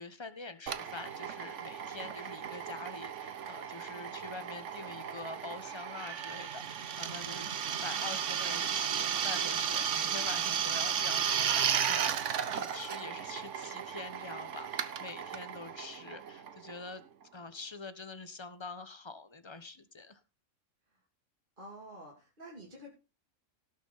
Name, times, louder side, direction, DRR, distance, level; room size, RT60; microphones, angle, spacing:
voice 1, 0.0-7.5 7.8-17.0 17.3-20.2, left 3 dB, 20° left, 12 dB, 1.0 m, -45 dB
Drill, 0.7-17.0, right 8 dB, 60° right, 1.2 m, -34 dB
voice 2, 21.6-22.9, equal, 35° right, -2 dB, 3.2 m, -48 dB
18.0 x 6.6 x 4.1 m, 0.30 s
omnidirectional pair, 1.5 m